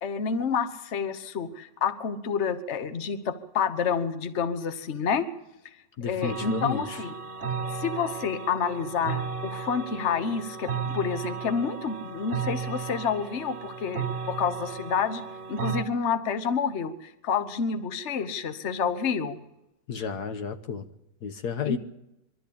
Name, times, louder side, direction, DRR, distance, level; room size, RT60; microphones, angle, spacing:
voice 1, 0.0-5.3 6.0-7.1 7.7-15.2 15.5-19.4 21.6-21.8, left 6 dB, 45° left, 1.3 m, -29 dB
voice 2, 6.0-7.0 19.9-20.8 21.2-21.8, left 6 dB, 65° left, 1.6 m, -32 dB
sound 1, 6.2-15.8, right 6 dB, 50° right, 1.2 m, -34 dB
23.5 x 13.0 x 8.6 m
omnidirectional pair, 1.9 m